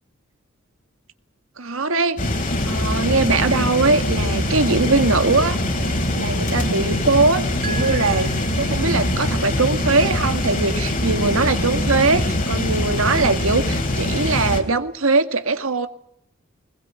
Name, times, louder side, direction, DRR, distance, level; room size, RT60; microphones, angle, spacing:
voice 1, 1.6-2.2 2.7-5.6 6.1-8.3 8.6-15.9, right 3 dB, 85° right, 9 dB, 1.9 m, -21 dB
sound 1, 2.2-14.6, left 1 dB, 40° left, 3.5 m, -23 dB
sound 2, 7.6-9.2, right 3 dB, 45° right, 3.8 m, -35 dB
21.5 x 20.5 x 9.1 m, 0.75 s
head